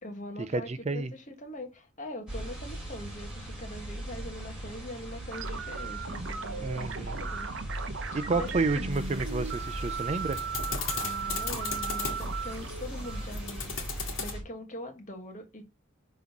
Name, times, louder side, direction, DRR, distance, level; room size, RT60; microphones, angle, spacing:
voice 1, 0.0-7.5 8.1-8.9 11.0-15.7, left 1 dB, 35° left, 1.4 m, -42 dB
voice 2, 0.5-1.1 6.6-7.2 8.1-10.4, right 3 dB, 30° right, 0.4 m, -30 dB
Ambiente Cuidad Noche, 2.3-14.4, right 1 dB, 5° right, 2.8 m, -39 dB
sound 1, 5.3-14.2, right 6 dB, 70° right, 0.8 m, -38 dB
sound 2, 8.9-14.3, left 5 dB, 75° left, 1.6 m, -38 dB
5.5 x 3.7 x 5.9 m
head